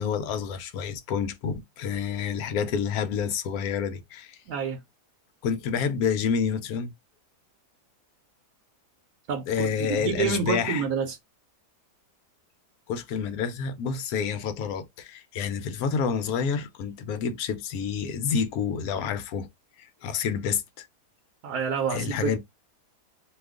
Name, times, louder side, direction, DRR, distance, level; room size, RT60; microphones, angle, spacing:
voice 1, 0.0-4.4 5.4-6.9 9.5-10.8 12.9-19.5 19.8-20.9 21.9-22.4, left 7 dB, 70° left, 1.0 m, -28 dB
voice 2, 4.5-4.8 9.3-11.2 21.4-22.4, right 6 dB, 75° right, 1.1 m, -28 dB
2.7 x 2.3 x 3.5 m
omnidirectional pair, 1.7 m